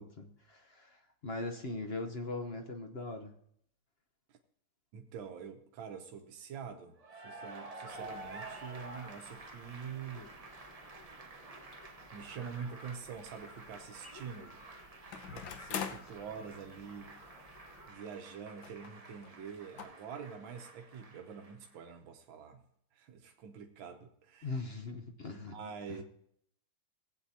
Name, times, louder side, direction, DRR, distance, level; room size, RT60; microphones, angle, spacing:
voice 1, 0.0-3.3 24.4-25.6 25.9-26.0, left 3 dB, 40° left, 5 dB, 0.9 m, -40 dB
voice 2, 4.9-7.0 7.2-10.3 12.1-14.5 15.3-22.6 22.9-24.6 25.3-26.0, right 6 dB, 80° right, 3 dB, 1.7 m, -46 dB
Cheering / Applause, 7.0-21.9, right 2 dB, 60° right, 0.4 m, -51 dB
sound 1, 7.9-17.9, left 1 dB, 20° left, 1.2 m, -56 dB
sound 2, 12.8-12.9 15.1-16.1 17.1-17.2 17.4-17.5 18.6-18.9 19.2-19.3 19.8-19.9, left 7 dB, 80° left, 1.7 m, -41 dB
19.0 x 8.5 x 2.8 m, 0.68 s
omnidirectional pair, 2.1 m